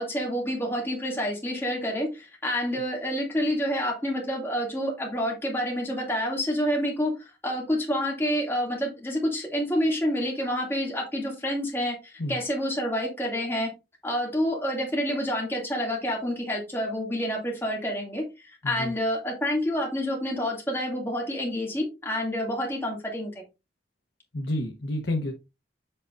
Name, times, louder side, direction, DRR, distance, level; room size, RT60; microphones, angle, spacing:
voice 1, 0.0-7.1 7.4-13.7 14.0-23.3, equal, 15° left, 2.4 m, -28 dB
voice 2, 24.3-25.3, left 1 dB, 85° left, 1.0 m, -29 dB
7.7 x 5.3 x 2.6 m
head